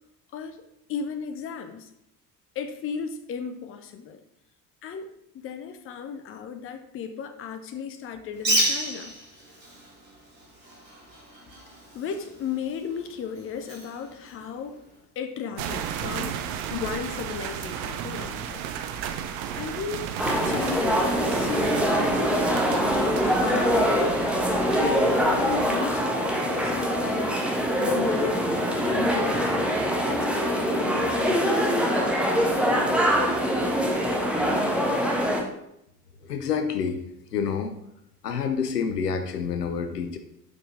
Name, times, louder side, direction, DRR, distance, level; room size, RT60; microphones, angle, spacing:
voice 1, 0.3-1.9 2.5-4.2 4.8-5.1 5.4-9.1 11.9-14.8 15.2-16.4 16.7-18.6 19.5-20.1 20.4-24.1 24.8-27.4 27.8-29.6 30.1-32.9, left 6 dB, 25° left, 8 dB, 0.7 m, -35 dB
Bird, 8.3-15.0, right 1 dB, 80° right, 2.1 m, -32 dB
sound 1, 15.6-25.7, right 8 dB, 45° right, 0.7 m, -34 dB
sound 2, 20.2-35.4, equal, ahead, 1.1 m, -24 dB
voice 2, 36.2-37.0 37.3-37.7 38.2-40.2, left 6 dB, 75° left, 8 dB, 0.8 m, -28 dB
7.6 x 5.6 x 3.1 m, 0.79 s
figure-of-eight pair, 65°, 48 cm